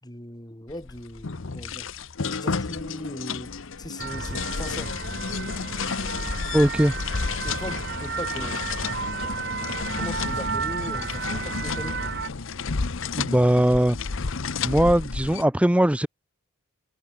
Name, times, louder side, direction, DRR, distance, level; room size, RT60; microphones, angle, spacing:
voice 1, 0.0-1.9 2.2-3.5 3.8-4.9 7.4-8.6 9.2-12.0, left 1 dB, 20° left, 3.5 m, -39 dB
sound 1, 0.7-15.4, left 4 dB, 60° left, 0.9 m, -31 dB
sound 2, 4.0-12.3, right 5 dB, 50° right, 5.8 m, -32 dB
voice 2, 6.5-7.0 13.2-14.0 14.6-16.1, right 1 dB, 5° right, 0.5 m, -20 dB
head